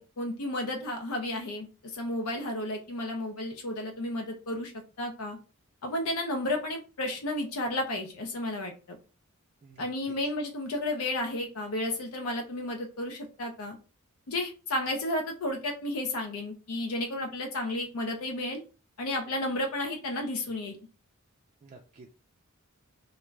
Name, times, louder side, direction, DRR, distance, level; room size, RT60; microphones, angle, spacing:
voice 1, 0.0-5.4 5.8-8.7 9.8-13.8 14.3-18.6 19.0-20.8, left 1 dB, 75° left, 3 dB, 0.6 m, -32 dB
voice 2, 9.6-10.1 21.6-22.1, right 3 dB, 35° right, 0 dB, 0.3 m, -51 dB
2.4 x 2.2 x 3.1 m, 0.33 s
head